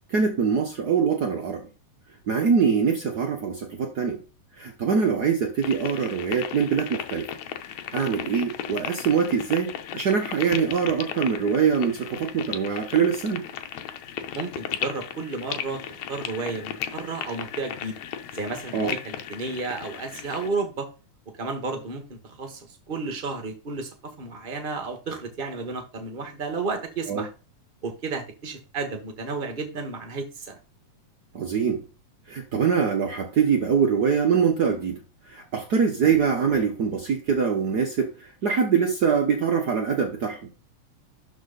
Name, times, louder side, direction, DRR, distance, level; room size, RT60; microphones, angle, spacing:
voice 1, 0.1-1.7 2.3-4.2 4.6-7.3 7.9-13.5 18.7-19.0 27.1-27.3 31.3-31.8 32.3-35.0 35.3-40.4, right 6 dB, 75° right, 4 dB, 0.9 m, -23 dB
sound 1, 5.6-20.5, left 10 dB, 75° left, 2.1 m, -36 dB
voice 2, 14.3-18.0 18.3-20.9 21.4-27.3 27.8-30.6, right 3 dB, 30° right, 6 dB, 1.0 m, -32 dB
12.0 x 4.5 x 4.0 m, 0.33 s
omnidirectional pair, 3.3 m